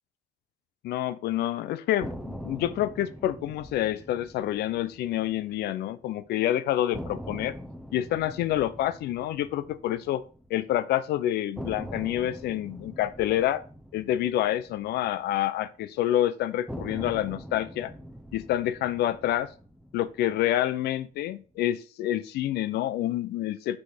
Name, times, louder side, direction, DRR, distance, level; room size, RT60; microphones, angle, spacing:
voice 1, 0.8-7.6 7.9-10.2 10.5-13.6 13.9-17.9 18.3-19.5 19.9-23.8, left 13 dB, 75° left, 0.7 m, -28 dB
sound 1, 2.0-6.1 6.4-6.5 6.9-11.0 11.6-15.9 16.7-21.0, equal, ahead, 0.8 m, -43 dB
6.1 x 5.9 x 5.0 m
cardioid pair, 110°, 17 cm